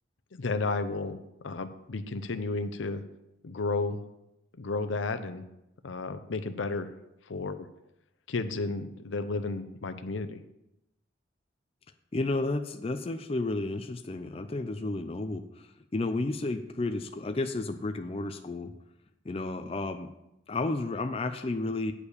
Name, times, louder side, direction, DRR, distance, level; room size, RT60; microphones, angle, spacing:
voice 1, 0.3-1.2 1.4-3.0 3.4-4.0 4.6-5.4 5.8-6.9 7.3-7.7 8.3-10.4, left 3 dB, 80° left, 9 dB, 0.6 m, -32 dB
voice 2, 12.1-18.7 19.2-20.1 20.5-21.9, left 2 dB, 30° left, 7 dB, 0.4 m, -32 dB
8.5 x 4.9 x 6.6 m, 0.87 s
head